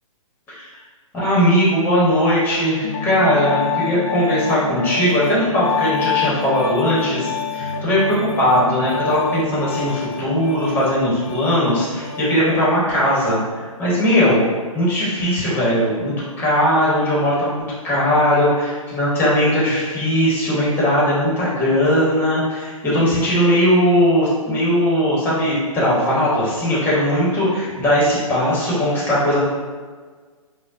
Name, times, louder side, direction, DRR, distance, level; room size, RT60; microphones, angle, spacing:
voice 1, 1.1-14.4 14.7-29.4, equal, 10° left, -7 dB, 1.0 m, -19 dB
Piano, 2.8-12.5, left 6 dB, 30° left, 0.5 m, -27 dB
5.0 x 2.2 x 2.5 m, 1.5 s
hypercardioid pair, 150°, 18 cm